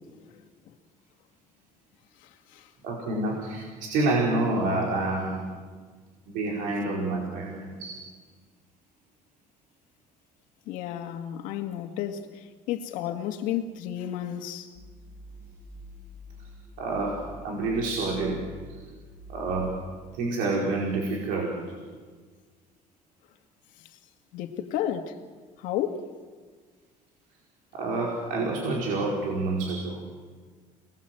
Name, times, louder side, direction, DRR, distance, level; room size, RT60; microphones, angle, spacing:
voice 1, 2.8-5.5 6.3-8.0 16.8-18.5 19.3-19.7 20.1-21.6 27.7-30.0, right 2 dB, 80° right, 4.8 m, -28 dB
voice 2, 10.7-14.7 24.3-25.2 25.6-26.1, left 10 dB, 75° left, 2.1 m, -32 dB
sound 1, 14.7-19.7, equal, 25° left, 3.5 m, -46 dB
29.0 x 20.5 x 7.9 m
cardioid pair, 180°, 14 cm